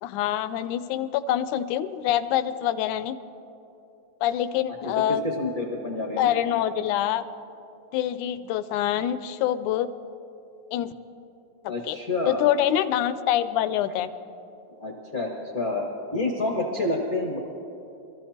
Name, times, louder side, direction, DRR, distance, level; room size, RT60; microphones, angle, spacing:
voice 1, 0.0-3.2 4.2-5.2 6.2-7.2 7.9-9.9 10.7-10.9 11.6-12.0 12.3-14.1, left 11 dB, 80° left, 13 dB, 1.9 m, -25 dB
voice 2, 5.4-6.3 11.7-12.4 14.8-15.9 16.1-17.4, left 2 dB, 55° left, -1 dB, 1.0 m, -28 dB
24.0 x 14.5 x 2.8 m, 2.9 s
omnidirectional pair, 3.6 m